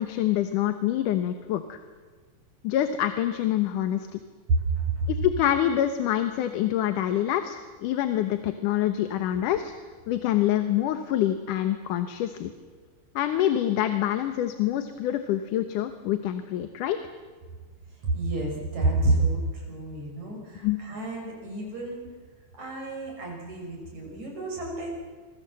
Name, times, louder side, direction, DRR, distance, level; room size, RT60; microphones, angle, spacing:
voice 1, 0.0-1.8 2.6-4.2 5.1-9.7 10.1-12.5 13.2-17.0 20.6-20.8, left 12 dB, 90° left, 9 dB, 2.6 m, -26 dB
voice 2, 4.5-5.1 18.0-22.0 22.6-24.9, right 2 dB, 65° right, -1 dB, 7.2 m, -29 dB
28.0 x 22.0 x 7.6 m, 1.5 s
omnidirectional pair, 3.5 m